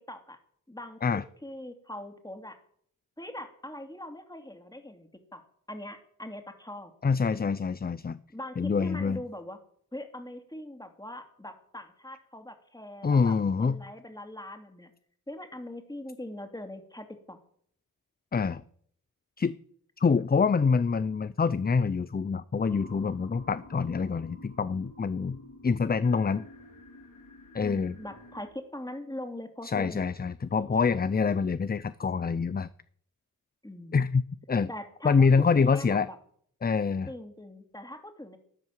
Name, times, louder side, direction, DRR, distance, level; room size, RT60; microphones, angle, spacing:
voice 1, 0.1-0.4 0.7-1.0 1.4-2.6 3.2-5.4 5.7-6.9 8.3-9.6 9.9-13.3 13.6-14.9 15.3-17.4 27.6-30.3 33.6-34.1 34.7-36.2 37.1-38.4, left 1 dB, 10° left, 6 dB, 2.8 m, -42 dB
voice 2, 7.0-8.2 8.6-9.2 13.0-13.8 18.3-18.6 19.4-19.6 20.0-26.5 27.5-27.9 29.6-32.7 33.9-34.7 35.0-36.1 36.6-37.1, left 5 dB, 30° left, 16 dB, 0.6 m, -26 dB
sound 1, 22.6-28.5, left 2 dB, 70° left, 4.6 m, -50 dB
12.5 x 11.5 x 7.5 m, 0.62 s
wide cardioid pair, 75°, 34 cm